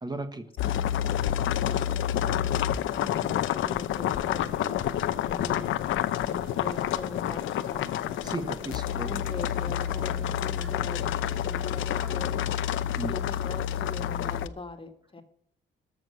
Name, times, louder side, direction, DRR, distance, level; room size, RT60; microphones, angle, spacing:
voice 1, 0.0-0.5 8.2-9.1 13.0-13.2, right 2 dB, 20° right, 8 dB, 1.2 m, -35 dB
sound 1, 0.6-14.5, left 11 dB, 80° left, 0.7 m, -29 dB
voice 2, 1.3-5.7 6.3-7.4 7.7-7.9 8.2-8.5 9.0-11.1 11.4-12.5 13.1-15.2, left 3 dB, 25° left, 7 dB, 2.0 m, -41 dB
sound 2, 1.6-12.3, equal, ahead, 3.5 m, -48 dB
13.5 x 6.4 x 8.2 m, 0.66 s
cardioid pair, 90°, 20 cm